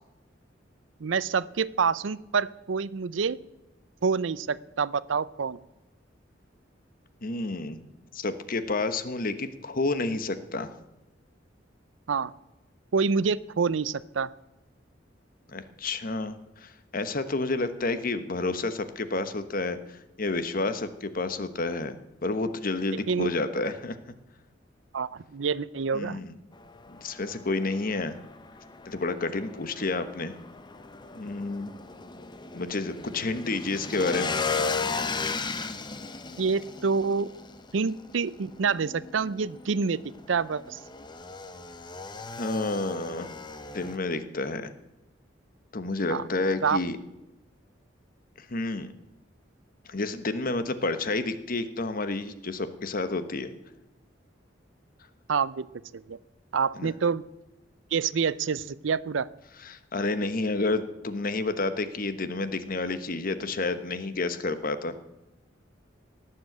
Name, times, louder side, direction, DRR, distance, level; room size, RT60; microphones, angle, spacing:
voice 1, 1.0-3.4 4.0-5.6 12.1-12.3 12.9-14.3 23.1-23.3 24.9-26.2 36.4-37.3 37.7-40.0 40.3-40.8 46.1-46.2 46.6-46.8 55.3-55.7 55.9-56.2 56.5-57.2 57.9-59.3, right 5 dB, 85° right, 18 dB, 0.5 m, -27 dB
voice 2, 7.2-7.8 8.1-10.7 15.5-16.3 16.6-21.9 22.2-24.0 25.9-26.4 26.9-28.2 28.8-30.3 31.1-31.7 32.5-34.4 42.4-43.3 43.7-44.7 45.7-47.0 48.4-48.9 49.9-53.5 56.8-56.9 59.6-65.0, left 3 dB, 50° left, 11 dB, 1.1 m, -30 dB
Motorcycle / Engine, 26.5-44.0, left 4 dB, 25° left, 0.8 m, -36 dB
18.0 x 7.7 x 8.0 m, 1.0 s
head